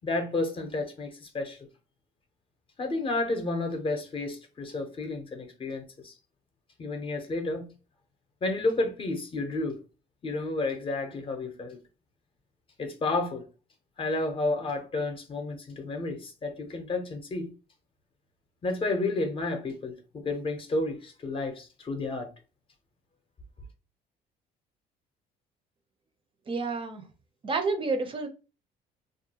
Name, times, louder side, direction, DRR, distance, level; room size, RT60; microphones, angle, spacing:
voice 1, 0.0-1.6 2.8-6.1 6.8-7.7 8.4-9.8 10.2-11.8 12.8-13.4 14.0-17.5 18.6-22.3, left 2 dB, 30° left, 0.6 m, -31 dB
voice 2, 26.5-27.0 27.4-28.3, right 3 dB, 30° right, 0.5 m, -29 dB
2.4 x 2.1 x 2.8 m
cardioid pair, 110°, 17 cm